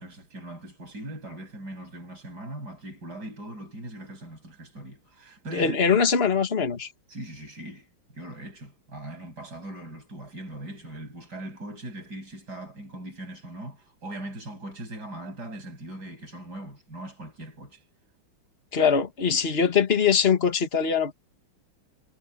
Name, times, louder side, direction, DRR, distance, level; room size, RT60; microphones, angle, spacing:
voice 1, 0.0-5.8 7.1-7.9 8.1-17.8 19.3-19.7, right 1 dB, 45° right, 8.8 m, -40 dB
voice 2, 5.5-6.9 18.7-21.1, left 6 dB, 30° left, 2.0 m, -22 dB
omnidirectional pair, 2.4 m